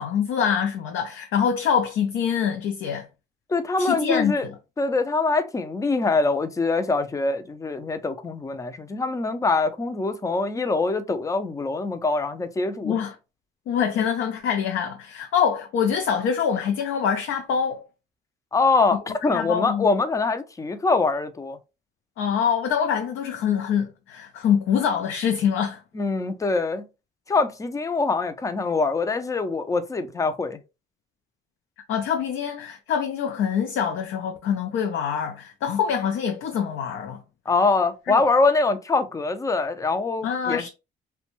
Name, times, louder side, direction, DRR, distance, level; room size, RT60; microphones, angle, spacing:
voice 1, 0.0-3.1 3.8-4.3 12.8-13.1 13.7-17.8 19.3-19.9 22.2-25.8 31.9-37.2 38.1-38.2 40.2-40.7, left 7 dB, 80° left, 0.4 m, -25 dB
voice 2, 3.5-4.5 4.8-13.0 18.5-21.6 25.9-26.9 27.3-30.6 37.5-40.7, left 3 dB, 15° left, 0.4 m, -24 dB
2.5 x 2.1 x 2.8 m
cardioid pair, 90°, 20 cm